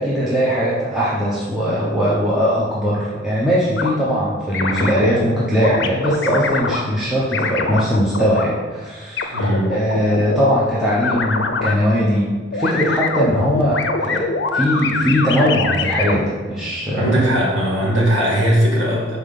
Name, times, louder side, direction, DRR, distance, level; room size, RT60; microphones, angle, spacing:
voice 1, 0.0-9.4 9.7-17.2, equal, 5° right, -8 dB, 0.7 m, -20 dB
sound 1, 3.8-3.9 4.5-5.1 5.6-6.8 7.3-8.4 9.2-10.4 11.0-11.7 12.5-16.2, left 4 dB, 65° left, 0.6 m, -23 dB
voice 2, 9.3-9.7 17.0-19.2, equal, 80° right, -3 dB, 1.9 m, -18 dB
5.5 x 4.1 x 5.4 m, 1.5 s
head